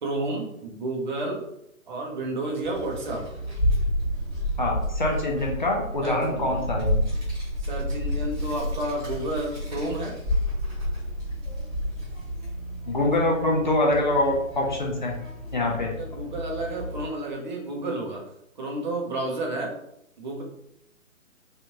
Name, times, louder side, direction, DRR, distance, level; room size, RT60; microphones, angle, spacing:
voice 1, 0.0-1.4 1.9-3.3 6.0-6.6 7.6-10.1 16.0-18.2 18.6-19.7 20.2-20.4, right 2 dB, 35° right, 0 dB, 0.7 m, -31 dB
Child speech kid speaking, 2.6-17.1, equal, 15° right, 1.0 m, -30 dB
voice 2, 4.6-7.1 12.9-15.1 15.5-15.9, left 2 dB, 35° left, -1 dB, 0.5 m, -24 dB
3.2 x 2.4 x 2.8 m, 0.79 s
figure-of-eight pair, 135°, 42 cm